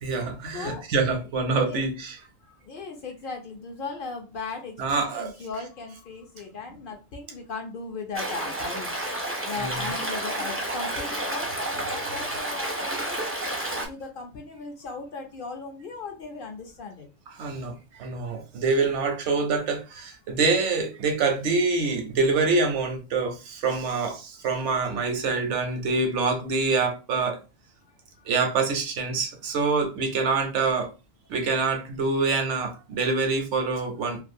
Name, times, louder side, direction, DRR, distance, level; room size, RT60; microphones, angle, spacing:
voice 1, 0.0-2.2 4.8-5.3 9.6-9.9 17.3-27.4 28.3-30.9 31.3-34.2, right 4 dB, 85° right, 1.0 m, -26 dB
voice 2, 0.5-0.8 1.6-1.8 2.5-8.9 9.4-13.2 13.7-17.1 27.9-28.3, left 4 dB, 60° left, 0.6 m, -37 dB
Stream, 8.1-13.9, right 1 dB, 20° right, 0.4 m, -30 dB
2.4 x 2.3 x 2.6 m
omnidirectional pair, 1.2 m